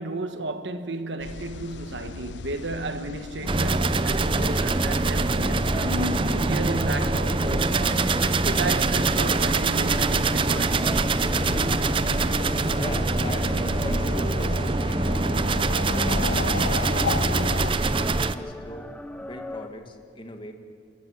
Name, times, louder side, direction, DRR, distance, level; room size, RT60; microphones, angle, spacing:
voice 1, 0.0-8.1 8.5-11.0, right 2 dB, 85° right, 1.4 m, -33 dB
sound 1, 1.2-17.7, left 4 dB, 80° left, 0.5 m, -36 dB
sound 2, 3.4-19.7, equal, 5° left, 0.8 m, -35 dB
sound 3, 3.5-18.3, right 3 dB, 30° right, 0.6 m, -24 dB
voice 2, 12.8-15.6 15.9-17.1 17.7-18.9 19.2-20.5, left 1 dB, 30° left, 1.9 m, -40 dB
30.0 x 13.5 x 8.1 m
head